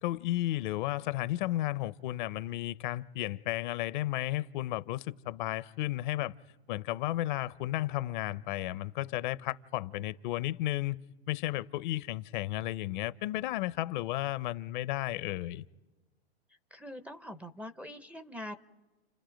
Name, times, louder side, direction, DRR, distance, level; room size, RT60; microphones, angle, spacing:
voice 1, 0.0-6.3 6.7-11.0 11.3-15.6, left 15 dB, 45° left, 0.8 m, -33 dB
voice 2, 16.7-18.6, left 1 dB, 5° right, 0.7 m, -43 dB
30.0 x 29.0 x 5.2 m
hypercardioid pair, 130°, 32 cm